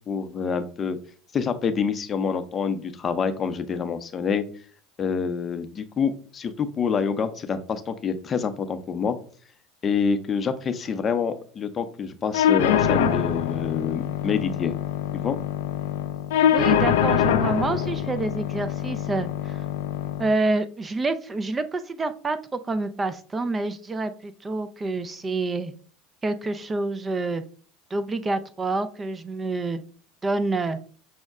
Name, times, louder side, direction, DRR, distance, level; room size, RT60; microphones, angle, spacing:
voice 1, 0.1-1.0 1.3-4.4 5.0-9.2 9.8-14.7 15.1-15.4, left 6 dB, 30° left, 9 dB, 0.6 m, -27 dB
sound 1, 12.3-20.3, left 9 dB, 85° left, 0.4 m, -24 dB
voice 2, 16.5-19.6 20.2-25.7 26.2-27.4 27.9-29.8 30.2-30.8, right 3 dB, 20° right, 11 dB, 0.4 m, -27 dB
6.3 x 2.1 x 3.5 m, 0.42 s
supercardioid pair, 100°, 0 cm